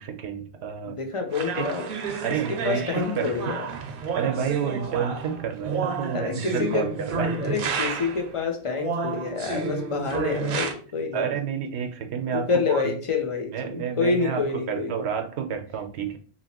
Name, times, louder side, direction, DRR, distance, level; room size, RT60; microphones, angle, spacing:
voice 1, 0.0-1.0 1.4-1.7 2.2-3.6 4.2-7.4 11.1-12.8 13.5-14.4 14.7-16.2, right 7 dB, 90° right, 5 dB, 0.9 m, -30 dB
voice 2, 0.8-1.9 2.5-3.7 6.1-6.9 7.4-11.4 12.3-14.9, left 4 dB, 50° left, 4 dB, 0.4 m, -27 dB
sound 1, 1.3-8.3 8.8-10.7, right 5 dB, 65° right, 0.7 m, -31 dB
2.8 x 2.8 x 2.8 m, 0.42 s
omnidirectional pair, 1.1 m